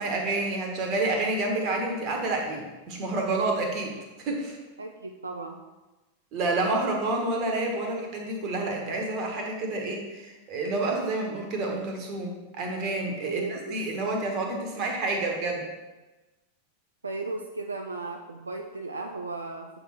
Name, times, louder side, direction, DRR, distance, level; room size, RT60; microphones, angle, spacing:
voice 1, 0.0-4.6 6.3-15.7, right 2 dB, 40° right, 1 dB, 1.4 m, -29 dB
voice 2, 4.8-5.6 13.2-13.9 17.0-19.7, right 3 dB, 75° right, 4 dB, 0.4 m, -35 dB
7.8 x 3.7 x 4.4 m, 1.1 s
figure-of-eight pair, 90°, 0 cm